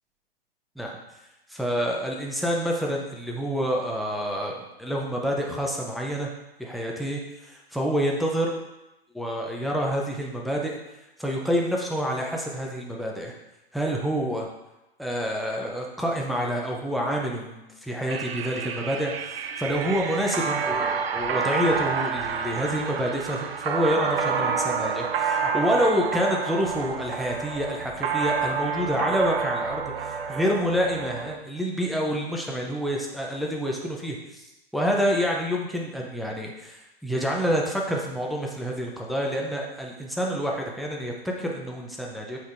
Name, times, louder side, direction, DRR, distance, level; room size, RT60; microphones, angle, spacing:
voice 1, 1.5-4.5 4.8-6.3 6.6-8.5 9.1-10.8 11.2-13.3 13.7-14.5 15.0-42.4, equal, ahead, -1 dB, 0.4 m, -28 dB
sound 1, 18.1-31.4, right 6 dB, 75° right, 0.7 m, -29 dB
8.1 x 4.6 x 2.5 m, 0.96 s
hypercardioid pair, 135°, 30 cm